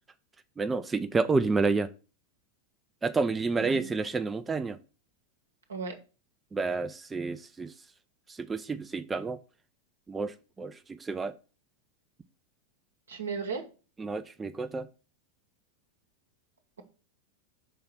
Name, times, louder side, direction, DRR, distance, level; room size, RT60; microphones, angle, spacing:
voice 1, 0.6-1.9 3.0-4.8 6.5-7.7 8.3-9.4 10.1-11.3 14.0-14.9, right 4 dB, 15° right, 10 dB, 0.3 m, -29 dB
voice 2, 3.6-4.0 5.7-5.9 13.1-13.6, right 5 dB, 70° right, 4 dB, 1.0 m, -35 dB
5.6 x 3.8 x 5.7 m, 0.34 s
figure-of-eight pair, 90°, 0 cm